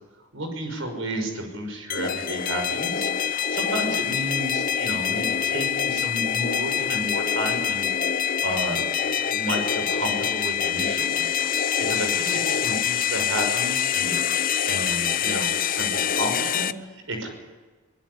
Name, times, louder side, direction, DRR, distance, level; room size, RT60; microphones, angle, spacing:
voice 1, 0.3-8.8 9.2-11.5 11.8-17.3, right 1 dB, 70° right, 4 dB, 5.9 m, -32 dB
sound 1, 1.9-16.7, left 8 dB, 40° left, 0.7 m, -25 dB
23.5 x 20.0 x 9.8 m, 1.3 s
head